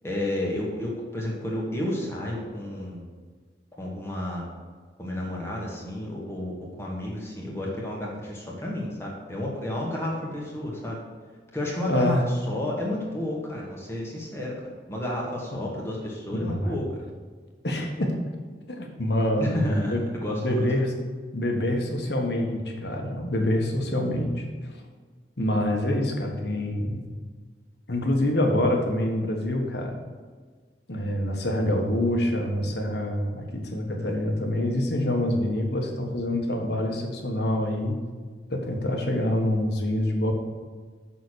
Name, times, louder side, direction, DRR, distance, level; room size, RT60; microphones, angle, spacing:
voice 1, 0.0-3.1 3.8-4.5 5.0-6.5 6.8-11.0 11.5-14.5 14.9-17.0 19.4-20.7, left 1 dB, 15° left, -3 dB, 1.6 m, -31 dB
voice 2, 11.9-12.2 15.6-15.7 16.3-16.7 17.6-18.1 18.8-20.0 20.3-20.9 21.3-24.4 25.4-27.1 27.9-30.0 30.9-38.0 38.5-40.3, left 1 dB, 75° left, 2 dB, 1.5 m, -26 dB
7.0 x 6.2 x 6.4 m, 1.5 s
head